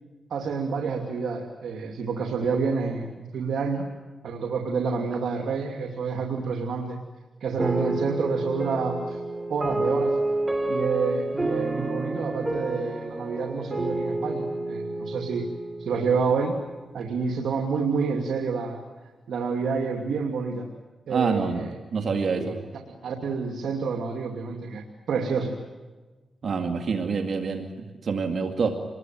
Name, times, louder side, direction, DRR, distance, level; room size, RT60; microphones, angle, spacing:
voice 1, 0.3-3.9 4.2-7.0 7.4-9.2 9.5-10.2 10.7-15.4 15.8-16.6 16.9-18.8 19.3-20.7 21.1-21.7 22.3-22.5 23.0-25.5, right 5 dB, 85° right, 3 dB, 2.6 m, -28 dB
sound 1, 7.6-16.7, right 2 dB, 20° right, 4.1 m, -29 dB
voice 2, 21.1-22.6 26.4-28.8, right 5 dB, 65° right, 5 dB, 2.3 m, -27 dB
27.0 x 21.5 x 9.3 m, 1.3 s
cardioid pair, 70°, 0 cm